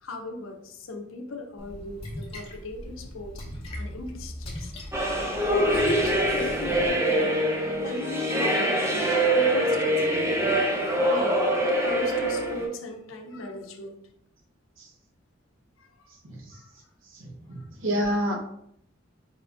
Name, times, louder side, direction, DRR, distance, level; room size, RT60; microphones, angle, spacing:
voice 1, 0.0-3.4 3.8-4.7 5.4-10.1 11.0-13.9 15.8-15.9 16.5-16.7 17.6-17.7, left 2 dB, 80° left, 4 dB, 0.6 m, -36 dB
Splash splatter, 1.6-6.9, left 1 dB, 30° left, 0.8 m, -39 dB
sound 1, 4.9-12.7, right 1 dB, 15° right, 0.6 m, -24 dB
voice 2, 16.2-16.6 17.1-18.3, equal, 75° right, -1 dB, 1.0 m, -29 dB
4.3 x 2.6 x 3.4 m, 0.74 s
head